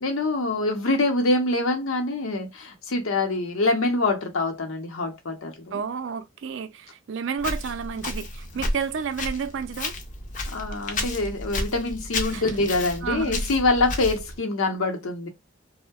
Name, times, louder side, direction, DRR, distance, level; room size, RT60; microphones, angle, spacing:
voice 1, 0.0-5.8 10.5-15.3, left 2 dB, 80° left, 0.7 m, -25 dB
voice 2, 5.7-9.9 12.3-12.5 13.0-13.4, right 6 dB, 60° right, 0.3 m, -31 dB
Walk footsteps, 7.4-14.4, left 2 dB, 40° left, 0.4 m, -32 dB
2.6 x 2.1 x 2.3 m
head